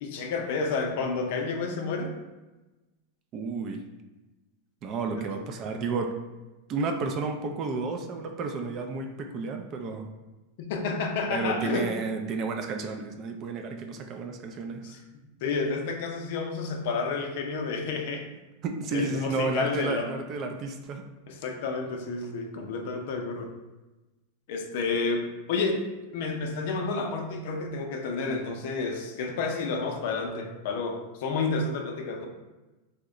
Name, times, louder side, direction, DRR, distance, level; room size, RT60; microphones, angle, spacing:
voice 1, 0.0-2.1 5.1-5.4 10.6-11.9 14.8-15.0 15.4-18.3 18.9-20.1 21.3-23.5 24.5-25.8 26.1-32.3, left 4 dB, 65° left, 3 dB, 0.5 m, -30 dB
voice 2, 3.3-3.8 4.8-6.2 6.7-10.1 11.3-14.9 18.6-21.0, right 4 dB, 40° right, 5 dB, 0.3 m, -31 dB
2.9 x 2.1 x 3.6 m, 1.1 s
supercardioid pair, 135°, 0 cm